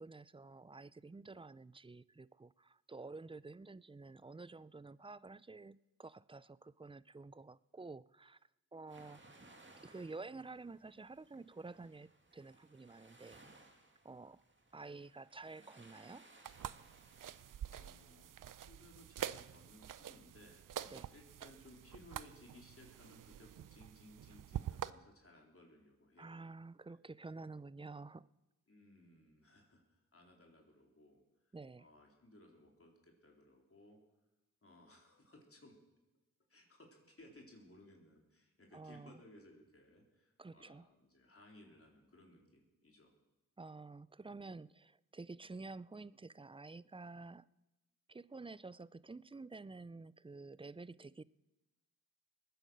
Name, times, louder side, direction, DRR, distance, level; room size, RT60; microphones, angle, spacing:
voice 1, 0.0-8.4 8.7-9.4 9.8-13.4 14.0-14.4 14.7-16.3 20.9-21.1 26.2-28.3 31.5-31.9 38.7-39.2 40.4-40.9 43.6-47.5 48.1-51.2, right 3 dB, 15° right, 0.5 m, -50 dB
sound 1, 8.9-17.6, right 2 dB, 35° right, 2.2 m, -63 dB
sound 2, 16.4-24.9, right 10 dB, 70° right, 0.6 m, -47 dB
voice 2, 17.7-20.6 21.1-26.4 26.9-27.0 28.7-34.0 34.6-35.8 36.5-43.1, left 1 dB, 40° left, 3.7 m, -61 dB
20.5 x 9.3 x 6.4 m
cardioid pair, 45°, 34 cm